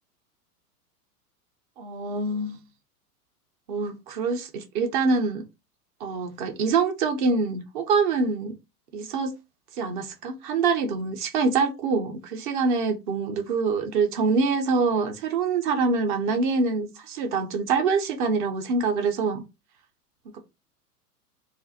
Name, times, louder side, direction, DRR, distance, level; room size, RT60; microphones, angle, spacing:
voice 1, 1.8-2.6 3.7-5.4 6.0-8.5 8.9-9.3 9.7-19.4, right 4 dB, 35° right, 0.5 m, -25 dB
2.4 x 2.1 x 2.6 m
figure-of-eight pair, 100°, 48 cm